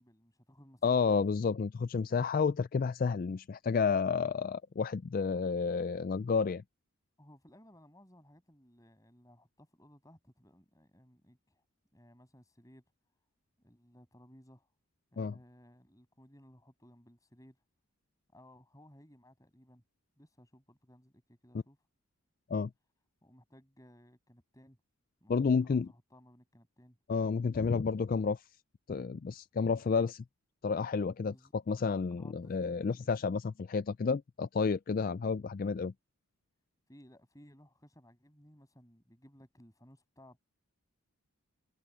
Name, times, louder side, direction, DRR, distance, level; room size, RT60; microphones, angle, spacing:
voice 1, 0.0-1.1 7.2-11.6 11.9-12.8 13.6-14.7 15.1-17.6 18.3-19.8 20.2-21.8 23.2-24.8 25.2-25.4 25.6-27.0 31.3-31.5 32.1-33.3 36.9-40.4, equal, 15° left, 7.4 m, -59 dB
voice 2, 0.8-6.6 15.2-15.3 22.5-22.7 25.3-25.9 27.1-28.4 28.9-30.2 30.6-35.9, left 5 dB, 40° left, 0.3 m, -31 dB
head